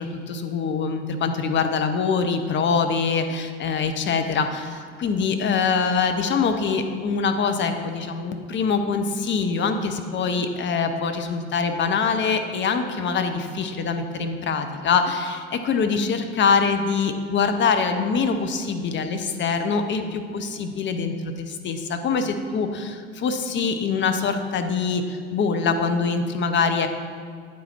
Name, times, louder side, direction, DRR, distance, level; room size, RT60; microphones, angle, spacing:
voice 1, 0.0-26.9, left 5 dB, 35° left, 7 dB, 0.7 m, -24 dB
9.1 x 4.1 x 4.4 m, 2.1 s
hypercardioid pair, 65°, 34 cm